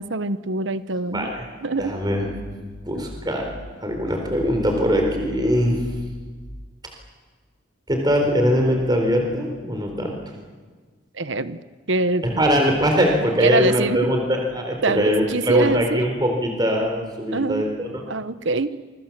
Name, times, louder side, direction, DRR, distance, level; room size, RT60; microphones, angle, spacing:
voice 1, 0.0-1.3 1.6-1.9 2.9-3.0 11.1-11.6 11.9-12.6 13.4-14.1 14.8-16.0 17.3-17.6 18.1-18.7, right 3 dB, 70° right, 13 dB, 1.0 m, -24 dB
voice 2, 1.1-1.4 1.8-2.3 2.8-3.5 3.8-5.9 7.9-10.1 12.2-18.0, equal, 20° right, 2 dB, 4.0 m, -21 dB
28.0 x 23.5 x 7.5 m, 1.4 s
head